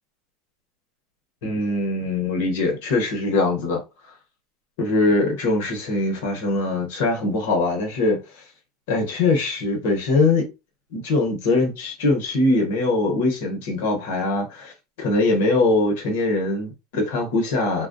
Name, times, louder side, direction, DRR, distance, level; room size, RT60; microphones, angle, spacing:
voice 1, 1.4-3.8 4.8-8.2 8.9-10.5 10.9-14.7 15.0-17.9, left 2 dB, 75° left, 1.0 m, -22 dB
2.3 x 2.1 x 2.6 m
supercardioid pair, 110°, 0 cm